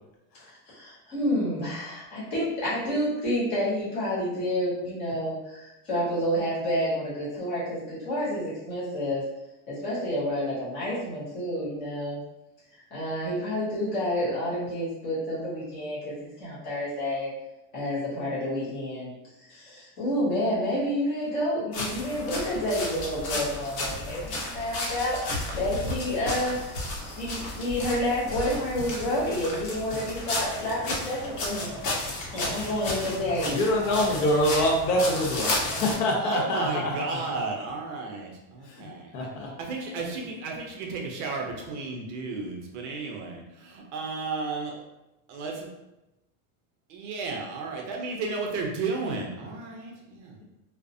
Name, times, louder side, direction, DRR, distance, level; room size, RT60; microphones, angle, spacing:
voice 1, 0.7-9.2 9.7-12.2 12.9-17.3 17.7-19.1 19.4-31.8 32.3-33.6, equal, 15° left, -9 dB, 0.4 m, -29 dB
sound 1, 21.7-35.9, left 2 dB, 55° left, 0.8 m, -33 dB
voice 2, 33.5-37.2 38.6-39.5, left 1 dB, 90° left, -1 dB, 0.9 m, -26 dB
voice 3, 36.2-44.8 45.3-45.7 46.9-50.4, right 4 dB, 50° right, 0 dB, 0.5 m, -33 dB
2.4 x 2.0 x 2.5 m, 0.93 s
supercardioid pair, 170°, 47 cm